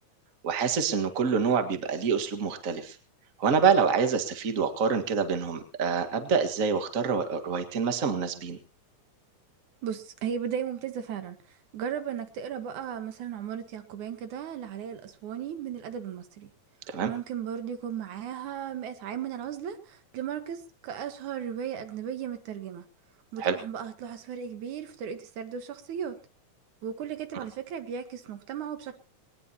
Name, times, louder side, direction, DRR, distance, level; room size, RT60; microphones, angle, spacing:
voice 1, 0.4-3.0 3.4-8.6 16.9-17.1 23.4-23.5 27.3-27.4, right 6 dB, 35° right, 8 dB, 1.6 m, -26 dB
voice 2, 9.8-11.4 11.7-16.5 17.0-22.8 23.3-26.2 26.8-29.0, right 8 dB, 80° right, 9 dB, 3.0 m, -36 dB
20.5 x 19.5 x 2.9 m, 0.35 s
omnidirectional pair, 3.4 m